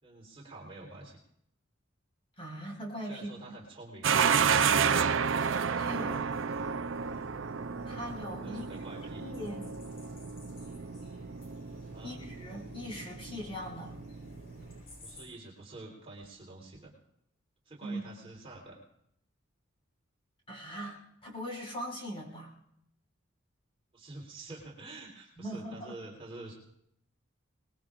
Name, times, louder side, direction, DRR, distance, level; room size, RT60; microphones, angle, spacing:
voice 1, 0.0-1.2 3.0-5.1 6.0-6.7 8.4-9.2 11.9-12.2 15.0-16.9 17.7-18.8 23.9-26.6, right 2 dB, 30° right, -3 dB, 3.8 m, -48 dB
voice 2, 2.4-3.3 5.8-6.3 7.8-8.6 9.2-9.7 12.0-14.0 17.8-18.0 20.5-22.5 25.4-25.9, equal, 25° left, -2 dB, 5.8 m, -40 dB
sound 1, 4.0-14.8, right 6 dB, 70° right, 0.6 m, -31 dB
sound 2, 6.0-15.3, left 1 dB, 75° left, 7.8 m, -52 dB
24.5 x 21.0 x 2.5 m, 0.74 s
head